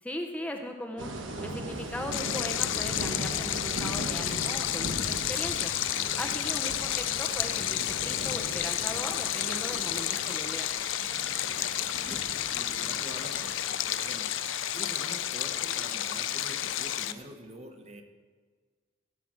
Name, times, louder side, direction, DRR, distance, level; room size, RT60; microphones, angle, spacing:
voice 1, 0.0-1.1 1.4-5.7 6.2-10.7, left 1 dB, 5° left, 3 dB, 0.7 m, -38 dB
sound 1, 1.0-17.1, right 1 dB, 85° right, 1.4 m, -40 dB
sound 2, 1.7-10.7, right 3 dB, 65° right, 1.1 m, -55 dB
Stream, 2.1-17.1, left 12 dB, 75° left, 0.5 m, -31 dB
voice 2, 5.9-6.2 11.2-12.3 12.5-14.3 14.7-18.0, right 1 dB, 35° right, 5 dB, 1.1 m, -46 dB
17.0 x 5.8 x 6.2 m, 1.5 s
head